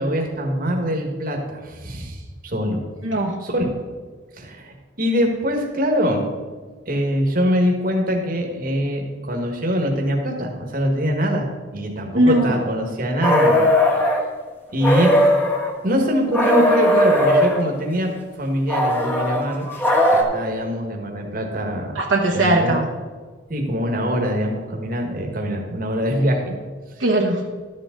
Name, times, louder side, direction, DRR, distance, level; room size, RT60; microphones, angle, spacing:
voice 1, 0.0-2.8 3.4-3.7 4.4-6.2 6.9-13.6 14.7-15.1 15.8-19.7 20.1-22.0 22.3-22.8 23.5-26.6, equal, 45° right, 2 dB, 1.5 m, -23 dB
voice 2, 3.0-3.3 12.1-12.5 21.9-22.8 27.0-27.4, right 1 dB, 75° right, -1 dB, 1.2 m, -19 dB
sound 1, 13.2-14.2 14.8-15.7 16.3-17.6 18.7-20.2, left 1 dB, 10° left, 1.2 m, -18 dB
12.5 x 7.8 x 3.8 m, 1.4 s
head